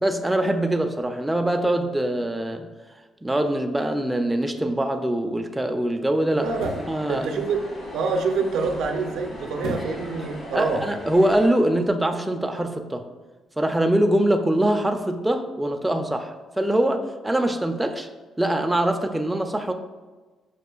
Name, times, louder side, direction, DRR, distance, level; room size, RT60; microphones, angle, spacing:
voice 1, 0.0-2.7 3.2-6.5 6.9-7.3 10.5-13.0 13.6-18.1 18.4-19.7, right 1 dB, 10° right, 4 dB, 0.3 m, -23 dB
voice 2, 6.3-6.7 7.1-7.6 7.9-10.9, right 4 dB, 80° right, 4 dB, 0.4 m, -26 dB
sound 1, 6.4-11.5, left 1 dB, 50° left, 1.2 m, -38 dB
sound 2, 6.5-7.0 9.6-10.1 10.5-10.6, left 1 dB, 85° left, 0.7 m, -33 dB
6.2 x 2.4 x 2.2 m, 1.3 s
cardioid pair, 90°, 0 cm